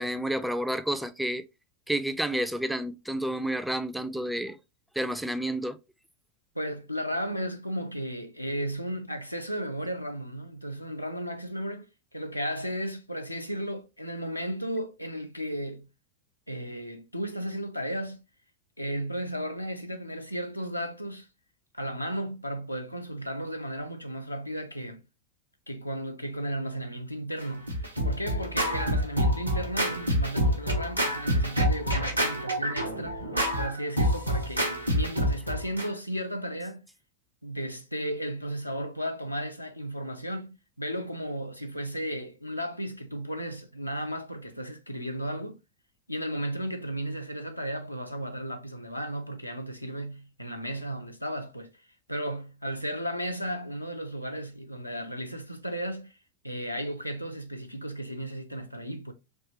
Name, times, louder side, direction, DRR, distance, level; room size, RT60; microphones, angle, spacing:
voice 1, 0.0-1.4 1.9-4.6 4.9-5.8, right 1 dB, 5° right, 0.3 m, -30 dB
voice 2, 6.5-15.9 16.5-18.2 18.8-21.3 21.7-25.0 25.7-27.8 28.0-33.2 33.6-36.8 37.4-45.6 46.1-51.7 52.1-56.2 56.4-59.1, equal, 85° left, 0.5 m, -34 dB
Scratching (performance technique), 27.4-35.9, equal, 90° right, 0.7 m, -27 dB
3.5 x 2.8 x 2.8 m
figure-of-eight pair, 90°, 0 cm